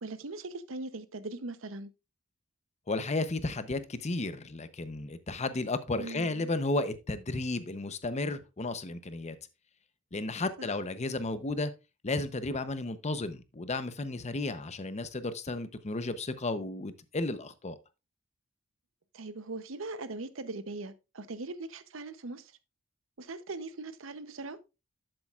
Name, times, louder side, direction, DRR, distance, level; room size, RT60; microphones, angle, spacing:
voice 1, 0.0-1.9 6.0-6.5 10.6-10.7 19.1-22.5 23.2-24.6, right 3 dB, 70° right, 0.8 m, -40 dB
voice 2, 2.9-9.4 10.1-11.7 12.0-17.8, left 2 dB, 35° left, 0.8 m, -33 dB
11.5 x 7.7 x 2.4 m
head